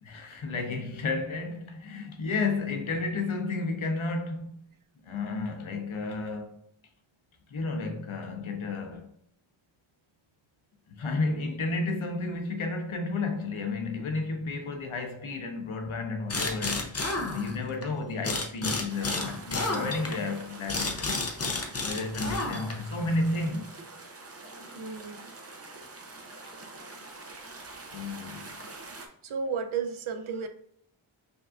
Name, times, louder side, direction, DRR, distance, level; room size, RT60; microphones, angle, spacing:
voice 1, 0.0-4.5 5.0-6.7 7.5-9.1 10.9-17.0 17.3-21.2 21.8-23.7 27.9-28.5, left 3 dB, 75° left, 0.8 m, -32 dB
sound 1, 16.3-17.9 18.2-22.9, left 3 dB, 30° left, 0.6 m, -31 dB
sound 2, 18.9-29.1, right 2 dB, 30° right, 0.6 m, -46 dB
voice 2, 24.7-25.2 29.2-30.5, right 6 dB, 75° right, 0.6 m, -33 dB
5.2 x 2.4 x 2.4 m
wide cardioid pair, 85°, 49 cm